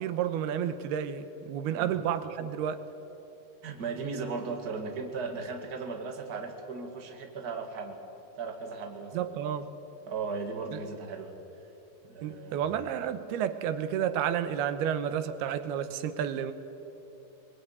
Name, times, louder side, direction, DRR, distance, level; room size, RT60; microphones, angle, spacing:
voice 1, 0.0-2.8 9.1-9.7 12.2-16.5, right 9 dB, 90° right, 11 dB, 3.0 m, -31 dB
voice 2, 3.6-8.0 8.4-9.3 10.1-11.3 12.0-12.7, right 4 dB, 30° right, 3 dB, 2.2 m, -37 dB
22.5 x 22.0 x 9.6 m, 3.0 s
omnidirectional pair, 4.4 m